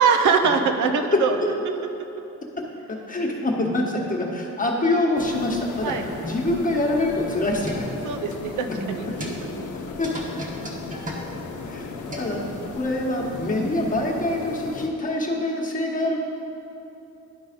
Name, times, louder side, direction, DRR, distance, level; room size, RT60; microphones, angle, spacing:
voice 1, 0.0-1.4 5.8-6.1 8.0-9.5, right 5 dB, 75° right, 6 dB, 0.6 m, -22 dB
voice 2, 1.1-1.5 2.6-5.9 6.2-7.9 9.7-10.1 11.6-12.4 12.7-16.2, left 2 dB, 25° left, -1 dB, 1.2 m, -25 dB
sound 1, 5.2-14.9, left 4 dB, 75° left, 0.8 m, -36 dB
sound 2, 7.6-12.7, equal, 25° right, 1.2 m, -37 dB
11.0 x 4.0 x 5.1 m, 2.9 s
cardioid pair, 90°, 30 cm